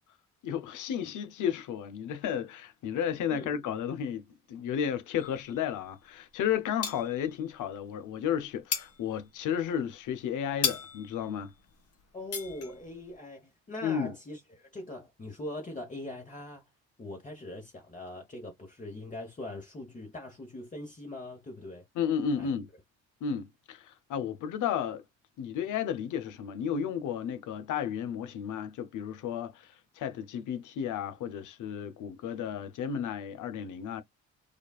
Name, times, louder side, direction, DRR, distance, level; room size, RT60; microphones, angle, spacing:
voice 1, 0.4-11.5 13.8-14.1 22.0-22.7 23.2-25.0 25.4-34.0, left 8 dB, 75° left, 0.8 m, -33 dB
sound 1, 5.2-6.2 6.5-7.6 7.9-13.1, left 6 dB, 50° left, 1.2 m, -37 dB
voice 2, 12.1-16.6 17.0-21.8 22.4-22.5, left 1 dB, 25° left, 1.1 m, -41 dB
5.0 x 2.4 x 2.3 m
cardioid pair, 75°, 31 cm